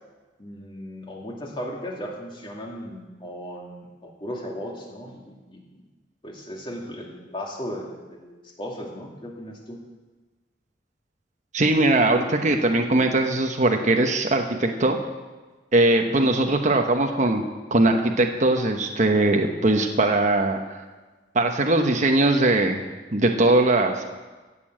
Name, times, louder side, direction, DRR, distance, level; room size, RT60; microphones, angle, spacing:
voice 1, 0.4-5.8 6.2-9.8 16.0-16.2, equal, 30° left, -1 dB, 2.4 m, -36 dB
voice 2, 11.5-15.0 15.7-17.4 17.7-20.8 21.3-22.8 23.1-24.0, right 2 dB, 45° right, 4 dB, 1.0 m, -20 dB
16.0 x 7.0 x 7.8 m, 1.3 s
head